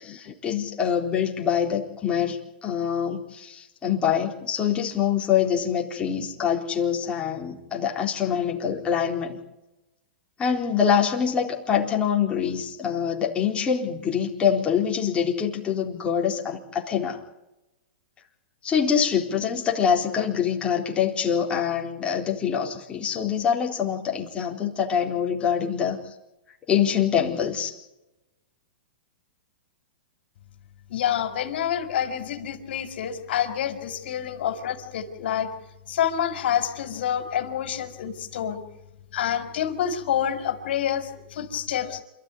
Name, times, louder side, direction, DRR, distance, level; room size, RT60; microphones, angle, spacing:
voice 1, 0.0-9.4 10.4-17.2 18.6-26.1 26.7-27.7, left 8 dB, 20° left, 0 dB, 4.0 m, -25 dB
voice 2, 30.9-35.5 35.9-38.6 39.1-42.0, left 9 dB, 65° left, 7 dB, 4.6 m, -27 dB
28.5 x 13.5 x 9.9 m, 0.95 s
hypercardioid pair, 145°, 6 cm